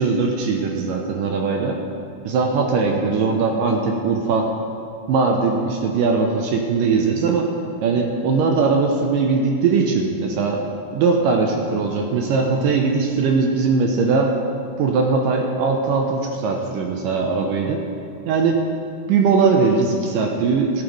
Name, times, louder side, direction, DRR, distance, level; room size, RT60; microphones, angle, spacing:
voice 1, 0.0-1.8 2.2-4.5 5.1-7.5 7.8-10.6 10.9-14.3 14.8-17.9 18.3-18.7 19.1-20.8, right 4 dB, 75° right, 2 dB, 2.1 m, -20 dB
17.0 x 8.7 x 3.2 m, 2.4 s
omnidirectional pair, 4.5 m